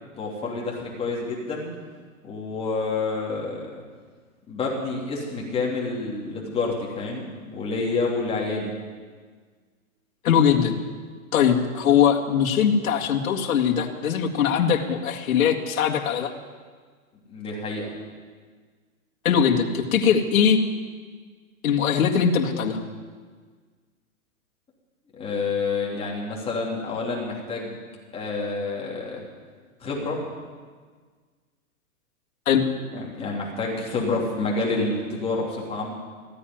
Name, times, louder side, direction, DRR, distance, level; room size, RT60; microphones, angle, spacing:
voice 1, 0.2-1.7 2.2-3.7 4.5-8.7 17.3-17.9 25.2-27.8 28.1-29.2 29.8-30.2 32.9-35.9, left 3 dB, 15° left, -3 dB, 3.4 m, -28 dB
voice 2, 10.2-10.7 11.3-16.3 19.2-20.6 21.6-22.8 32.5-32.6, left 7 dB, 70° left, 0 dB, 2.1 m, -21 dB
15.0 x 9.8 x 9.3 m, 1.6 s
hypercardioid pair, 150°, 43 cm